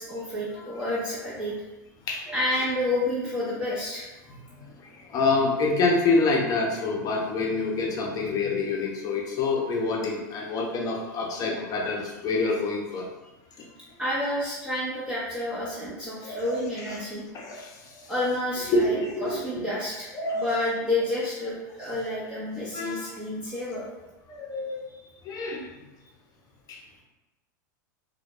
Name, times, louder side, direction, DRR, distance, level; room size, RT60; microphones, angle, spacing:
voice 1, 0.0-1.6 2.3-4.4 14.0-17.2 18.1-23.8, left 1 dB, 10° right, -9 dB, 0.7 m, -30 dB
voice 2, 2.1-2.6 4.5-13.0 13.6-13.7 16.2-16.6 16.9-17.0 17.3-18.1 18.7-19.4 20.1-20.5 22.7-23.1 24.3-24.8 25.2-25.6 26.7-26.8, left 3 dB, 35° left, -1 dB, 0.6 m, -27 dB
2.2 x 2.1 x 2.9 m, 1.0 s
hypercardioid pair, 100°, 10 cm